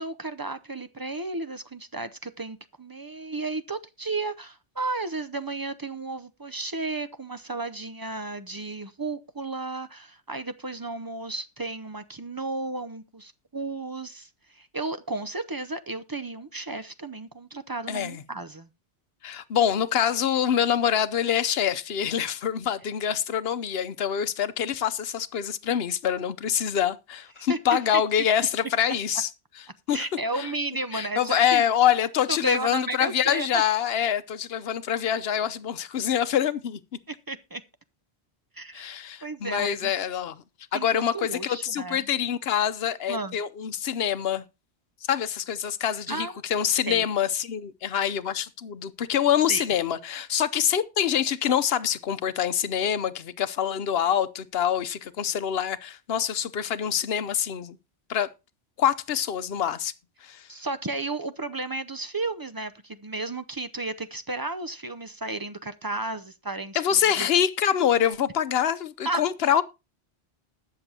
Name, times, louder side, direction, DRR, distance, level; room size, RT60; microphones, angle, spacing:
voice 1, 0.0-18.7 27.5-27.6 27.9-28.0 29.9-31.6 32.3-33.6 37.1-37.6 38.6-39.9 40.7-42.1 43.1-43.4 46.1-46.3 46.9-47.0 49.5-49.7 60.5-66.8 67.2-67.3 69.0-69.2, right 2 dB, 30° right, 0.4 m, -33 dB
voice 2, 17.9-18.2 19.2-29.3 29.9-30.0 30.4-30.5 30.9-36.8 38.7-40.4 40.7-44.4 45.1-57.8 58.1-58.3 58.8-59.9 60.2-60.5 66.7-69.6, left 9 dB, 65° left, 0.9 m, -25 dB
20.0 x 6.9 x 2.8 m
omnidirectional pair, 1.1 m